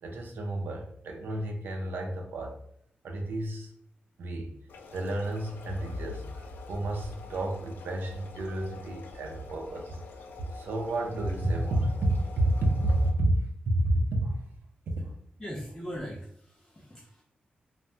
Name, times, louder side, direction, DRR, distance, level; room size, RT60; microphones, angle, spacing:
voice 1, 0.0-2.6 3.0-3.7 4.2-4.5 4.9-10.0 10.5-13.3 13.7-14.4 14.9-15.1, right 1 dB, 85° right, 2 dB, 0.5 m, -30 dB
sound 1, 4.7-13.1, left 3 dB, 85° left, 0.4 m, -44 dB
voice 2, 15.4-17.2, equal, 15° left, -3 dB, 0.4 m, -40 dB
3.2 x 2.1 x 2.7 m, 0.68 s
wide cardioid pair, 125°, 3 cm